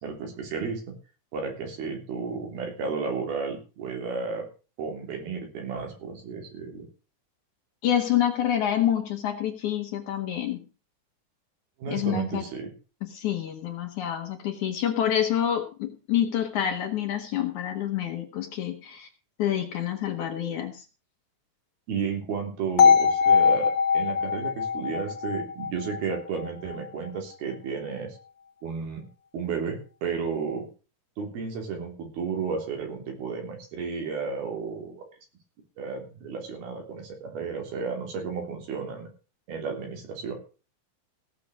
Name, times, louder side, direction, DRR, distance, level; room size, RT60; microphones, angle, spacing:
voice 1, 0.0-1.0 1.3-4.5 4.8-6.9 11.8-12.7 21.9-28.2 28.6-29.1 29.3-30.7 31.2-35.0 35.8-39.1 39.5-40.4, right 5 dB, 75° right, 2 dB, 5.2 m, -33 dB
voice 2, 7.8-10.6 11.9-12.5 13.1-19.1 19.4-20.9, left 10 dB, 60° left, 5 dB, 2.3 m, -27 dB
sound 1, 22.8-26.8, left 6 dB, 40° left, 2.1 m, -22 dB
16.5 x 6.8 x 6.2 m, 0.35 s
omnidirectional pair, 4.4 m